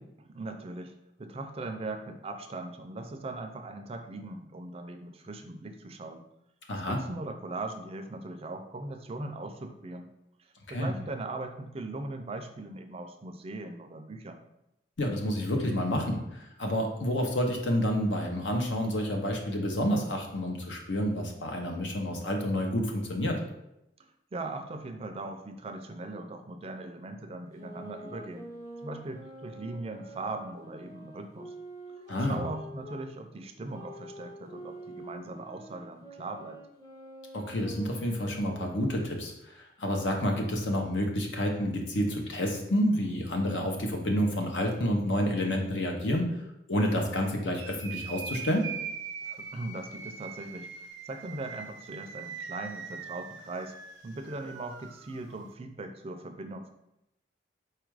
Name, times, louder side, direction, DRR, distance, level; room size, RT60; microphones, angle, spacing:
voice 1, 0.3-6.3 6.9-10.1 10.4-14.4 24.3-28.5 28.8-31.5 31.9-36.6 49.2-53.7 54.0-56.7, right 2 dB, 30° right, 6 dB, 0.4 m, -40 dB
voice 2, 6.7-7.0 10.7-10.9 15.0-23.4 32.1-32.4 37.3-46.3 46.7-48.6, equal, 80° left, 2 dB, 0.8 m, -29 dB
sound 1, 27.5-33.1 33.7-39.3, right 1 dB, 20° left, 0.7 m, -46 dB
sound 2, 47.5-55.5, right 6 dB, 90° right, 0.5 m, -42 dB
4.4 x 2.4 x 4.6 m, 0.85 s
head